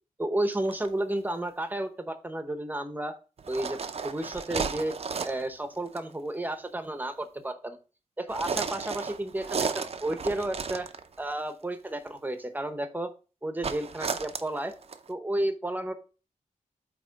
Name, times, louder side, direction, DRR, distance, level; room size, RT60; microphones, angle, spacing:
voice 1, 0.2-3.2 3.5-3.8 4.0-4.9 5.2-7.8 8.2-10.9 11.2-13.1 13.4-14.7 15.1-15.9, right 1 dB, 15° right, 8 dB, 0.9 m, -32 dB
sound 1, 0.5-0.9 3.4-5.5 5.9-6.1 8.3-11.3 13.6-15.1, right 5 dB, 50° right, 0.6 m, -33 dB
8.3 x 3.1 x 5.2 m, 0.34 s
wide cardioid pair, 135°, 14 cm